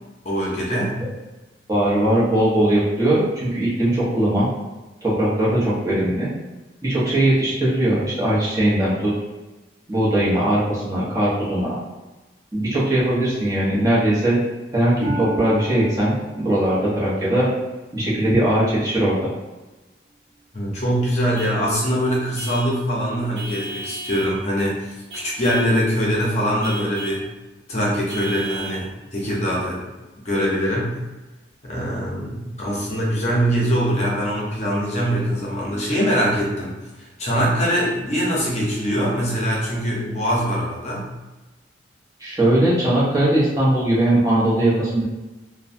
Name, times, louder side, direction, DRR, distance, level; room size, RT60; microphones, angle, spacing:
voice 1, 0.2-1.0 5.4-5.6 20.5-24.9 25.1-27.3 27.7-29.8 30.2-31.0 31.6-36.8 37.2-41.1, equal, 40° left, -4 dB, 0.7 m, -23 dB
voice 2, 1.7-4.5 5.0-6.3 6.8-9.1 9.9-11.8 12.5-14.4 14.7-17.5 17.9-19.3 42.2-45.0, right 1 dB, 20° right, -8 dB, 0.8 m, -20 dB
Harp, 15.0-18.7 19.3-19.7 20.3-20.4, right 1 dB, 85° right, 0.4 m, -35 dB
Vehicle horn car horn honking / Truck, 21.3-21.6 22.3-22.8 23.3-24.4 25.1-25.8 26.6-27.2 28.1-28.8, right 1 dB, 65° right, 0.9 m, -35 dB
3.0 x 2.1 x 2.6 m, 1.1 s
head